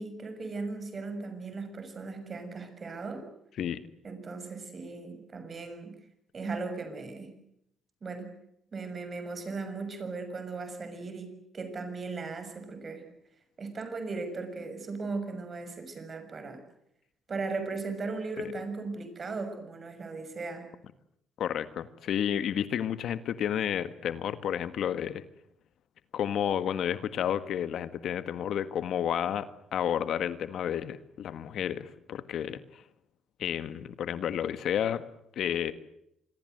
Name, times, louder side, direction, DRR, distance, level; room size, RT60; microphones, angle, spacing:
voice 1, 0.0-3.3 4.0-6.0 6.3-7.4 8.0-8.3 8.7-13.0 13.6-16.6 17.3-20.7, right 3 dB, 40° right, 9 dB, 6.4 m, -37 dB
voice 2, 21.4-25.2 26.1-29.5 29.7-32.8 33.4-35.0 35.3-35.7, left 9 dB, 70° left, 13 dB, 1.6 m, -31 dB
26.5 x 22.0 x 8.0 m, 0.76 s
cardioid pair, 90°, 0 cm